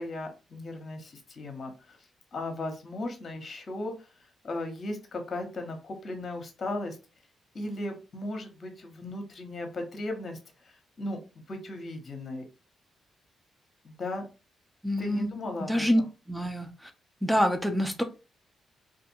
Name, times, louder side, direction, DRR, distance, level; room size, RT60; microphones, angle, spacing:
voice 1, 0.0-1.7 2.3-3.9 4.4-7.0 7.5-10.4 11.0-11.2 11.5-12.4 13.8-14.3 15.0-15.9, left 1 dB, 50° left, 5 dB, 0.8 m, -36 dB
voice 2, 14.8-16.0 16.3-16.9 17.2-18.0, equal, ahead, 6 dB, 0.6 m, -27 dB
2.5 x 2.3 x 2.8 m, 0.31 s
hypercardioid pair, 45°, 0 cm